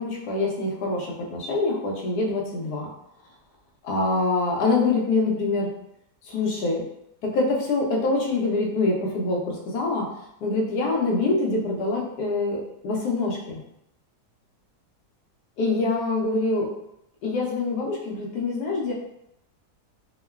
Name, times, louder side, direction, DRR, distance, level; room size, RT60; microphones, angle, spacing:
voice 1, 0.0-2.9 3.8-5.7 6.3-6.8 7.2-10.1 10.4-13.6 15.6-16.7 17.2-18.9, left 3 dB, 80° left, -2 dB, 1.2 m, -25 dB
3.0 x 2.2 x 2.2 m, 0.79 s
omnidirectional pair, 1.7 m